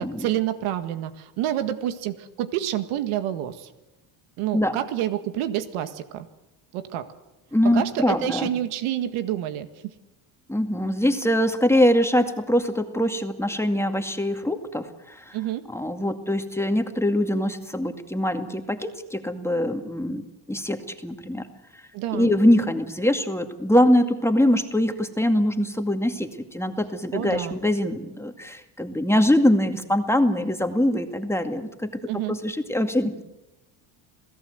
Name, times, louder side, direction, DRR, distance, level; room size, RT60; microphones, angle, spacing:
voice 1, 0.2-3.7 4.4-6.3 6.7-7.1 7.7-9.9 15.3-15.6 21.9-22.3 27.1-27.6 32.1-32.4, right 11 dB, 80° right, 9 dB, 1.8 m, -28 dB
voice 2, 7.5-8.5 10.5-15.4 15.7-21.5 22.1-32.0 32.3-33.2, left 1 dB, 5° left, 6 dB, 2.2 m, -23 dB
28.0 x 17.0 x 8.0 m, 0.99 s
supercardioid pair, 90°, 49 cm